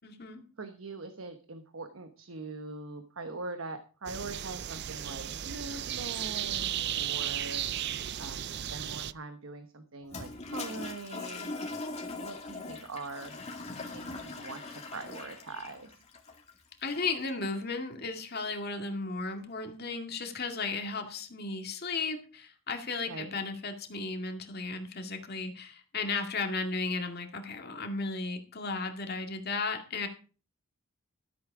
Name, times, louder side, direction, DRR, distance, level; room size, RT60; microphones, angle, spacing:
voice 1, 0.0-0.4 16.8-30.1, left 3 dB, 45° left, 4 dB, 2.2 m, -35 dB
voice 2, 0.6-7.6 8.2-11.5 12.1-13.4 13.9-16.0 23.1-23.3, right 3 dB, 70° right, 8 dB, 1.1 m, -42 dB
sound 1, 4.1-9.1, right 10 dB, 50° right, 0.4 m, -35 dB
Toilet flush, 10.0-17.3, left 3 dB, 30° left, 2.2 m, -41 dB
13.5 x 8.4 x 4.9 m, 0.38 s
head